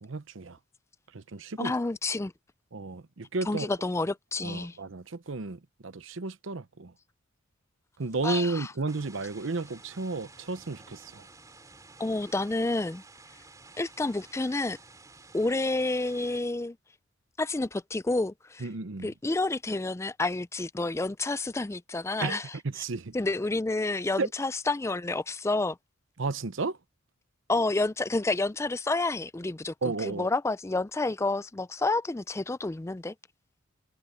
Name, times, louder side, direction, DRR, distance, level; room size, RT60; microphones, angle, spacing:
voice 1, 0.0-0.6 1.1-1.7 2.7-3.7 4.4-6.9 8.0-11.3 18.6-19.1 22.2-23.1 24.2-24.3 26.2-26.8 29.8-30.3, right 3 dB, 65° right, 0.8 m, -33 dB
voice 2, 1.6-2.3 3.5-4.8 8.2-8.7 12.0-13.0 13.8-14.8 15.3-16.8 17.4-18.7 19.0-22.6 23.1-25.8 27.5-33.1, left 2 dB, 15° left, 0.4 m, -29 dB
sound 1, 8.9-16.4, right 3 dB, 15° right, 3.4 m, -52 dB
head